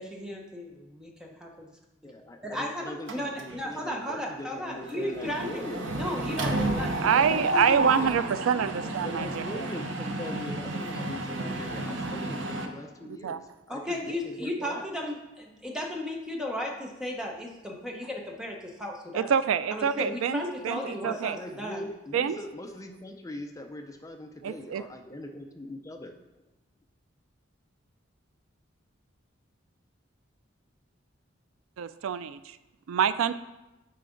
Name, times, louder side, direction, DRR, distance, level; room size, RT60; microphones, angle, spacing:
voice 1, 0.0-1.7 2.0-2.1 2.4-5.6 5.9-8.2 13.7-19.3 19.7-21.8, left 1 dB, 5° right, 0 dB, 0.8 m, -35 dB
voice 2, 2.0-5.9 8.8-14.9 20.7-26.2, left 1 dB, 15° left, 4 dB, 0.4 m, -41 dB
Mechanisms, 3.1-3.7 4.0-4.2 4.5-12.7, right 2 dB, 65° right, 0.7 m, -32 dB
voice 3, 7.0-9.4 13.2-13.4 19.1-21.4 22.1-22.4 24.4-24.8 31.8-32.6 32.9-33.3, right 7 dB, 90° right, 13 dB, 0.3 m, -26 dB
8.3 x 4.7 x 3.8 m, 1.0 s
head